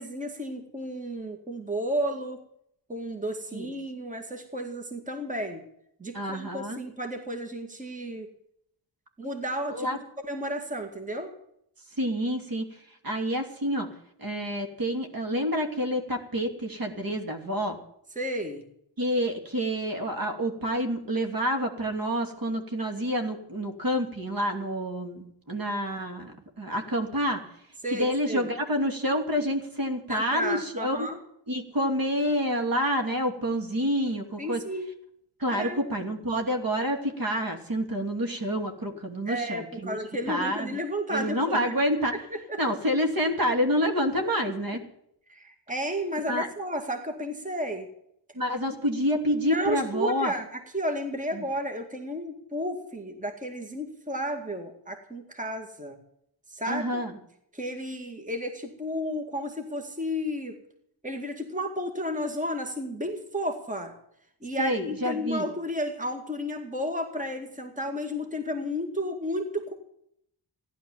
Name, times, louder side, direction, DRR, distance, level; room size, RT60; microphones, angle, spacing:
voice 1, 0.0-2.4 2.9-5.6 6.0-8.3 9.2-9.9 10.2-11.3 18.2-18.7 27.8-28.5 30.1-31.2 34.4-34.9 35.5-35.8 39.3-41.7 42.3-42.6 45.3-47.9 49.5-56.0 56.5-57.0 57.5-60.6 61.0-64.0 64.4-69.7, equal, 15° right, 5 dB, 2.1 m, -32 dB
voice 2, 6.1-6.8 9.7-10.0 12.0-12.6 13.0-13.9 14.2-17.8 19.0-27.4 27.9-31.1 31.5-34.6 35.4-40.0 40.3-40.8 41.1-42.1 42.6-44.8 46.3-46.5 48.3-50.3 51.3-51.4 56.7-57.1 64.6-65.4, equal, 50° right, 4 dB, 2.9 m, -28 dB
15.0 x 11.5 x 7.2 m, 0.73 s
wide cardioid pair, 115°, 44 cm